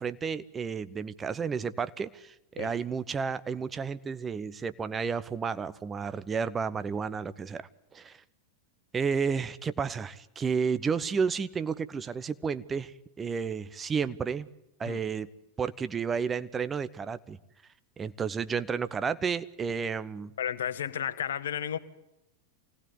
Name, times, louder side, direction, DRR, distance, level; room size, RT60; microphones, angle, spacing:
voice 1, 0.0-8.2 8.9-14.5 14.8-15.3 15.6-17.4 18.0-20.3, right 6 dB, 20° right, 14 dB, 1.0 m, -32 dB
voice 2, 20.4-21.8, left 9 dB, 60° left, 12 dB, 1.3 m, -32 dB
25.5 x 18.5 x 9.4 m, 0.88 s
figure-of-eight pair, 90°, 0 cm